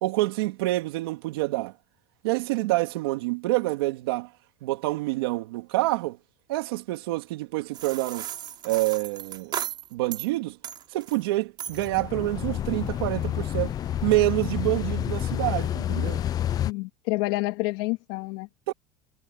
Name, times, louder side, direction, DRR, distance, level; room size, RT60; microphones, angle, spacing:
voice 1, 0.0-1.7 2.2-4.3 4.6-6.2 6.5-8.3 8.6-9.6 9.9-10.6 10.9-13.7 14.0-16.2 18.7-18.8, right 19 dB, 85° right, 2.9 m, -27 dB
sound 1, 7.7-10.3 10.6-11.2 11.6-12.0, right 10 dB, 35° right, 4.9 m, -36 dB
sound 2, 11.7-16.7, left 11 dB, 30° left, 0.6 m, -29 dB
voice 2, 16.6-18.5, left 22 dB, 70° left, 2.3 m, -28 dB
supercardioid pair, 135°, 12 cm